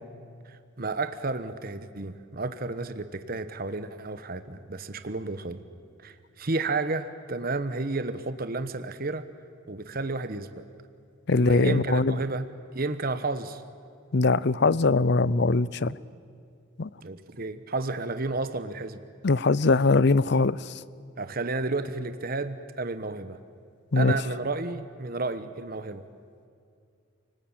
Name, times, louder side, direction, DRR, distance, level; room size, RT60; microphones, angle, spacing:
voice 1, 0.4-5.6 6.0-9.3 9.7-10.6 11.4-12.5 12.7-13.6 17.0-19.0 21.2-23.4 23.9-26.0, right 3 dB, 45° right, 10 dB, 1.1 m, -32 dB
voice 2, 11.3-12.2 14.1-16.0 16.8-16.9 19.2-20.7 23.9-24.1, left 3 dB, 55° left, 19 dB, 0.6 m, -22 dB
29.0 x 19.5 x 8.9 m, 2.4 s
head